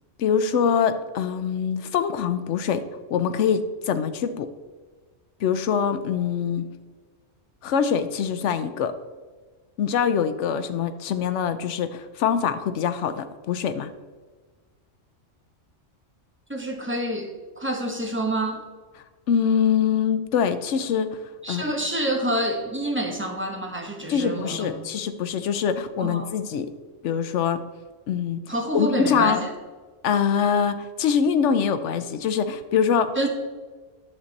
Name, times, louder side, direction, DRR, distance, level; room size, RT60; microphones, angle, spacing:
voice 1, 0.2-2.8 3.1-4.5 5.4-6.7 7.6-8.9 9.8-13.9 19.3-21.2 21.5-21.7 24.1-26.7 27.0-27.6 28.1-28.4 28.7-29.4 30.0-33.1, left 7 dB, 75° left, 10 dB, 1.0 m, -24 dB
voice 2, 16.5-17.3 17.6-18.6 21.4-24.9 26.0-26.3 28.5-29.5 33.2-33.3, right 1 dB, 10° right, 1 dB, 1.1 m, -27 dB
10.5 x 6.6 x 4.0 m, 1.4 s
omnidirectional pair, 1.3 m